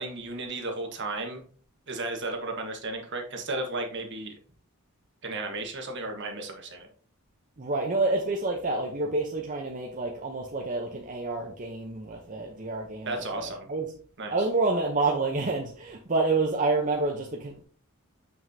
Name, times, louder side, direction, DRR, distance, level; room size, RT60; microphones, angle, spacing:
voice 1, 0.0-1.4 1.9-4.4 5.2-6.9 13.0-13.7 14.2-14.3, right 2 dB, 55° right, 1.4 m, -34 dB
voice 2, 7.6-13.9 14.3-17.6, right 3 dB, 35° right, 0.8 m, -28 dB
7.1 x 6.0 x 2.8 m
head